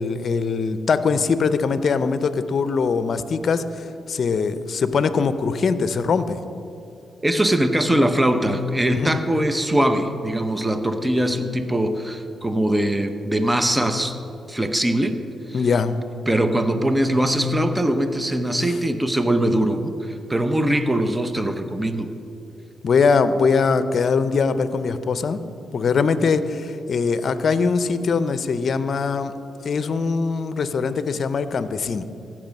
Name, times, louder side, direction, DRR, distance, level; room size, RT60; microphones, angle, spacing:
voice 1, 0.0-6.4 8.9-9.2 15.5-16.0 22.8-25.4 25.7-29.3 29.6-32.0, left 5 dB, 60° left, 12 dB, 0.6 m, -22 dB
voice 2, 7.2-14.1 14.5-15.1 15.5-15.6 16.3-22.1, right 1 dB, 15° right, 8 dB, 0.8 m, -21 dB
15.0 x 6.1 x 5.3 m, 2.7 s
cardioid pair, 60°, 0 cm